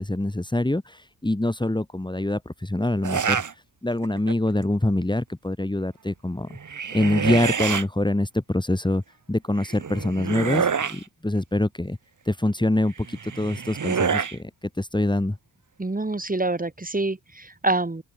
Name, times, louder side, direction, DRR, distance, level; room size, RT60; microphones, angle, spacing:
voice 1, 0.0-3.4 3.8-6.5 6.9-9.0 9.3-12.0 12.2-15.4, left 1 dB, 10° left, 4.6 m, -25 dB
sound 1, 3.0-3.5 4.0-4.5 6.5-7.8 9.6-11.0 13.0-14.4, right 6 dB, 50° right, 3.3 m, -27 dB
voice 2, 15.8-18.0, right 2 dB, 20° right, 7.7 m, -26 dB
open air
cardioid pair, 60°, 39 cm